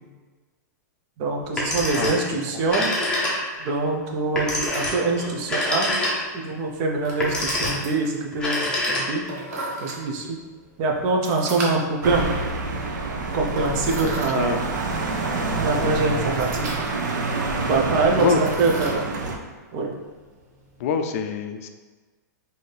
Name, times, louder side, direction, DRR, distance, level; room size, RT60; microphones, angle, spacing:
voice 1, 1.2-2.9 3.6-5.9 6.3-9.2 9.8-10.4 10.8-12.3 13.3-14.6 15.6-16.7 17.7-19.1 19.7-19.9, right 3 dB, 35° right, 1 dB, 0.6 m, -24 dB
Telephone, 1.4-2.3 2.6-3.7 4.3-6.4 7.1-7.9 8.3-9.4, left 1 dB, 10° left, 0.8 m, -26 dB
voice 2, 2.0-2.4 14.0-14.6 18.2-18.4 20.8-21.7, left 6 dB, 50° left, 7 dB, 0.4 m, -25 dB
sound 1, 3.5-21.0, right 1 dB, 60° right, 0.9 m, -39 dB
sound 2, 12.0-19.4, right 3 dB, 90° right, 0.6 m, -27 dB
4.0 x 2.7 x 3.3 m, 1.3 s
hypercardioid pair, 150°, 10 cm